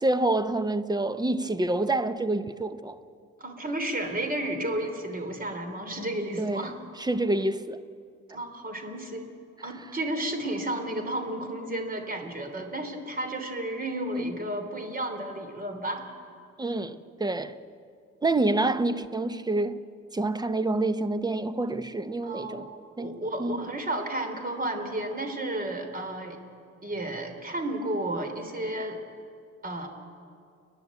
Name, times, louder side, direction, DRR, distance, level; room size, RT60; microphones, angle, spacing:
voice 1, 0.0-3.0 6.4-6.7 7.0-7.8 14.1-14.3 16.6-17.6 18.2-19.8 20.1-22.7 23.0-23.6, right 2 dB, 15° right, 0.9 m, -27 dB
voice 2, 3.4-6.7 8.3-9.3 9.6-16.0 22.2-22.7 23.0-26.4 26.8-29.0 29.6-29.9, right 1 dB, 30° right, 3.3 m, -32 dB
29.5 x 11.0 x 8.4 m
cardioid pair, 90°, 30 cm